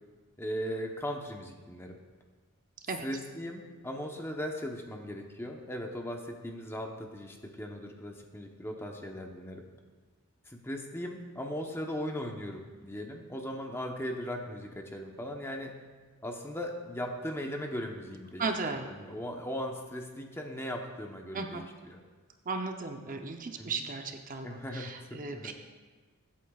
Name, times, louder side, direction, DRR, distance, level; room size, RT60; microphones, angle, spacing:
voice 1, 0.4-2.0 3.0-9.7 10.5-15.7 16.2-22.0 23.6-23.8 24.4-25.5, equal, 10° left, 2 dB, 0.9 m, -38 dB
voice 2, 18.4-18.9 21.3-21.6 22.4-25.5, right 4 dB, 40° right, 5 dB, 0.7 m, -36 dB
23.0 x 8.5 x 2.4 m, 1.4 s
head